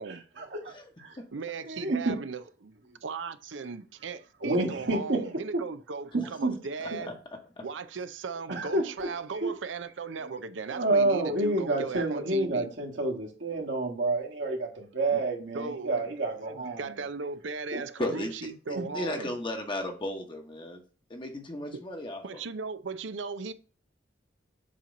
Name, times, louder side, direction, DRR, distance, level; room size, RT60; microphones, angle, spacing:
voice 1, 0.4-0.7 1.0-1.2 1.7-2.1 4.4-5.2 6.4-6.5 8.5-9.1 9.4-9.5 10.7-16.8 17.7-17.8 18.7-18.8, right 2 dB, 70° right, 1.7 m, -29 dB
voice 2, 1.3-7.1 7.6-12.7 15.1-15.2 15.5-16.1 16.5-19.4 22.2-23.5, right 4 dB, 90° right, 0.6 m, -37 dB
voice 3, 18.0-18.3 18.9-20.8 21.1-22.4, left 1 dB, 25° left, 1.1 m, -35 dB
7.5 x 3.0 x 5.1 m
head